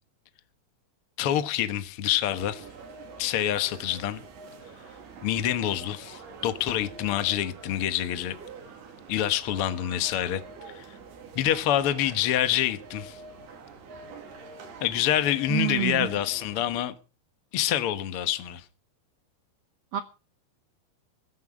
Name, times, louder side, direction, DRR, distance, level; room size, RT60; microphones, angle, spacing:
voice 1, 1.2-2.6 3.2-4.2 5.2-8.3 9.1-10.4 10.7-10.8 11.3-13.2 14.8-16.9 17.5-18.6, left 11 dB, 85° left, 1.2 m, -26 dB
sound 1, 2.3-16.8, right 4 dB, 90° right, 4.8 m, -46 dB
voice 2, 15.5-16.1 19.9-20.0, right 13 dB, 70° right, 1.5 m, -27 dB
16.0 x 12.5 x 5.0 m
omnidirectional pair, 4.4 m